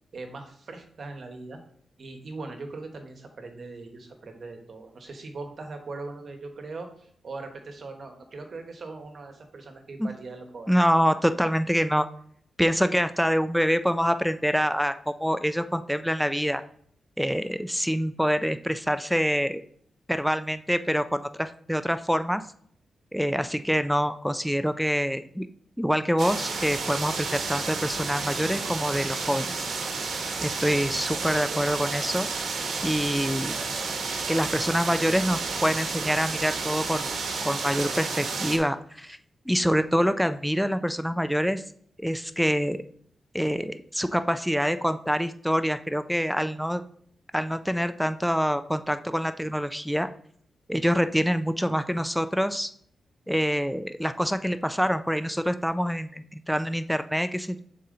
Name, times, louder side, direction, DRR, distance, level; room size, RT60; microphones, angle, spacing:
voice 1, 0.1-1.6 2.0-10.7 23.3-23.7, right 3 dB, 55° right, 5 dB, 1.2 m, -40 dB
voice 2, 10.7-12.1 12.6-16.6 17.2-19.6 20.1-22.4 23.1-25.5 25.8-29.7 30.4-32.3 32.8-33.6 34.3-37.1 37.4-39.2 39.5-41.6 42.0-42.8 43.3-46.8 47.3-50.1 50.7-52.7 53.3-57.6, equal, ahead, 10 dB, 0.4 m, -26 dB
sound 1, 26.2-38.6, right 4 dB, 75° right, 1.0 m, -31 dB
sound 2, 27.1-35.6, left 1 dB, 80° left, 1.8 m, -53 dB
6.8 x 4.3 x 3.8 m, 0.62 s
cardioid pair, 100°, 0 cm